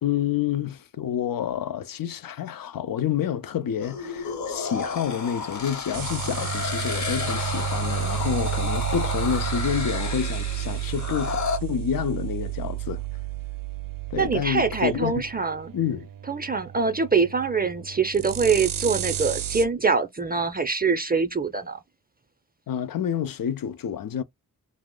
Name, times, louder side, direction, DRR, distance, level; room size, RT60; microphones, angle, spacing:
voice 1, 0.0-13.0 14.1-15.3 15.7-16.1 22.7-24.2, left 9 dB, 80° left, 0.5 m, -28 dB
sound 1, 3.8-11.6, left 4 dB, 55° left, 0.8 m, -32 dB
sound 2, 5.9-19.7, right 12 dB, 80° right, 0.5 m, -31 dB
voice 2, 14.2-15.7 16.3-21.8, right 5 dB, 25° right, 0.4 m, -24 dB
2.8 x 2.0 x 3.7 m
wide cardioid pair, 70°, 34 cm